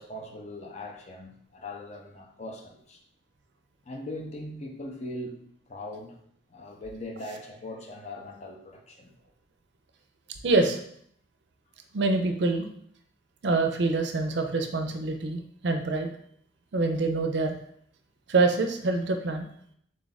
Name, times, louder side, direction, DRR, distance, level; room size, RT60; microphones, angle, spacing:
voice 1, 0.0-3.0 3.9-6.2 6.5-9.1, left 1 dB, 35° left, 2 dB, 0.5 m, -40 dB
voice 2, 10.4-10.8 11.9-12.7 13.4-16.1 16.7-17.6 18.3-19.5, right 3 dB, 60° right, 5 dB, 0.5 m, -25 dB
3.7 x 2.4 x 4.0 m, 0.65 s
head